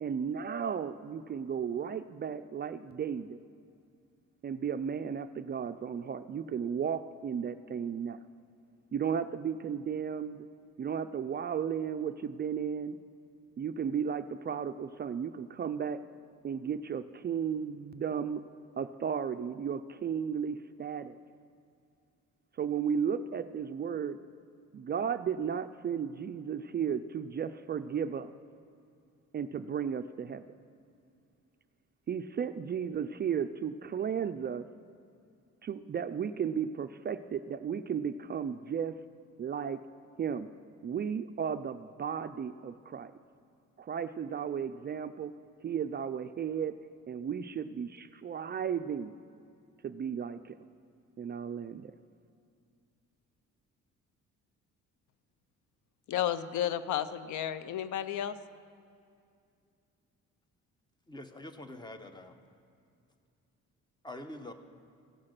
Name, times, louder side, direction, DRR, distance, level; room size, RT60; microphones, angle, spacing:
voice 1, 0.0-3.4 4.4-8.2 8.9-10.5 10.8-13.0 13.6-16.0 16.4-18.4 18.8-21.2 22.6-24.2 24.7-28.3 29.3-30.4 32.1-34.7 35.6-38.9 39.4-39.8 40.2-40.5 40.8-43.1 43.8-45.3 45.6-46.8 47.1-49.1 49.8-50.6 51.2-51.9, right 7 dB, 35° right, 0.4 m, -34 dB
voice 2, 56.1-58.4, left 10 dB, 75° left, 0.6 m, -32 dB
voice 3, 61.1-62.4 64.0-64.5, left 1 dB, 15° left, 0.9 m, -45 dB
16.5 x 5.7 x 6.6 m
cardioid pair, 90°, 30 cm